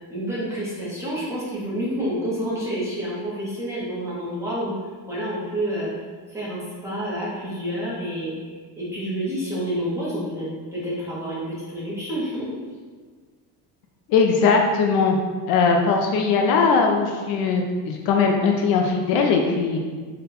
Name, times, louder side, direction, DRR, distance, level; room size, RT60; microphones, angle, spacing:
voice 1, 0.1-4.8 5.1-5.9 6.3-12.5, equal, 5° right, -8 dB, 0.7 m, -29 dB
voice 2, 14.1-15.2 15.5-19.8, left 5 dB, 60° left, 2 dB, 0.5 m, -20 dB
3.9 x 2.2 x 4.0 m, 1.5 s
cardioid pair, 180°, 40 cm